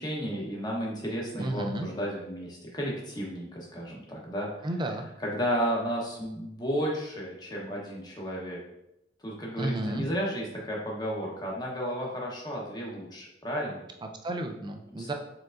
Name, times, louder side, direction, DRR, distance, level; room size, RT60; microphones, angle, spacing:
voice 1, 0.0-4.5 5.2-8.6 9.2-13.8 15.0-15.1, equal, 20° left, -3 dB, 1.0 m, -33 dB
voice 2, 1.4-1.9 4.6-5.1 9.6-10.1 14.0-15.1, right 1 dB, 25° right, 5 dB, 0.4 m, -32 dB
4.5 x 3.6 x 2.5 m, 0.83 s
head